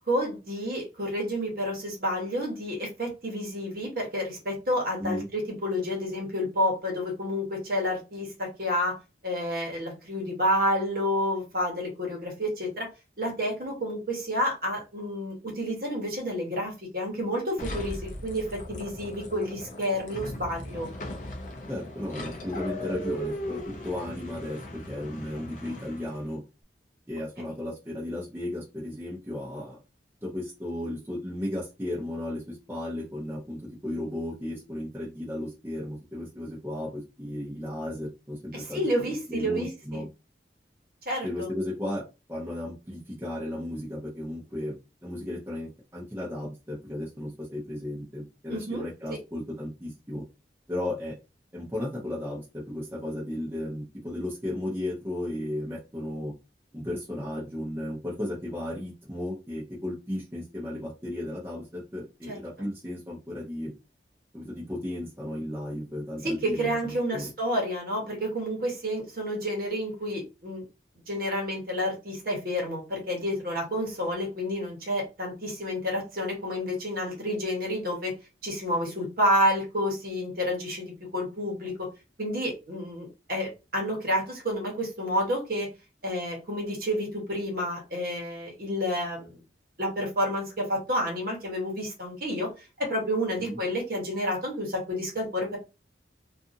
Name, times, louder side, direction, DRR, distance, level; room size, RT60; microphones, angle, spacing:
voice 1, 0.1-8.9 9.2-12.9 13.2-20.9 38.5-40.0 41.1-41.5 48.5-49.2 62.3-62.4 66.2-70.7 71.1-78.1 78.4-81.9 82.2-85.7 86.0-89.4 89.8-92.5 92.8-95.6, equal, 55° right, 0 dB, 1.1 m, -30 dB
sound 1, 17.6-26.3, left 1 dB, 45° left, 0.5 m, -38 dB
voice 2, 21.7-26.4 27.1-29.8 30.2-38.8 39.3-40.1 41.2-42.0 42.3-44.7 45.0-50.2 50.7-51.2 51.5-56.3 56.7-63.7 64.3-67.3 93.4-93.6, left 1 dB, 15° right, -5 dB, 0.8 m, -34 dB
2.5 x 2.5 x 2.6 m, 0.28 s
head